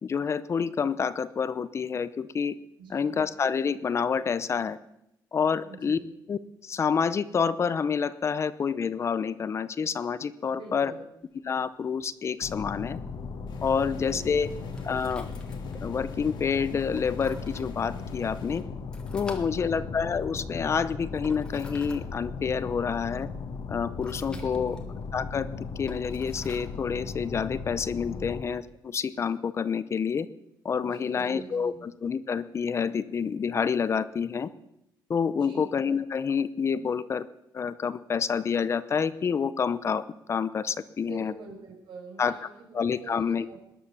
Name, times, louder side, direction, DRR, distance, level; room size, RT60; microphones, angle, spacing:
voice 1, 0.0-2.5 2.9-4.8 5.3-6.0 6.3-10.9 11.4-13.0 13.6-14.5 14.8-15.3 15.8-18.6 19.1-23.3 23.7-24.8 25.1-25.5 25.8-30.3 30.6-34.5 35.1-37.3 37.5-41.3 42.2-42.3 42.7-43.5, left 6 dB, 35° left, 15 dB, 0.6 m, -28 dB
voice 2, 2.8-3.2 5.6-6.1 10.5-11.0 13.8-14.7 19.3-19.8 24.2-24.9 30.8-31.8 35.3-35.6 41.1-43.6, right 3 dB, 85° right, 1 dB, 5.5 m, -45 dB
sound 1, 11.2-28.7, left 1 dB, 10° left, 1.7 m, -54 dB
sound 2, 12.4-28.4, left 4 dB, 60° left, 1.6 m, -37 dB
sound 3, 13.5-18.6, left 4 dB, 80° left, 3.0 m, -50 dB
19.5 x 10.0 x 7.0 m, 0.83 s
cardioid pair, 145°, 8 cm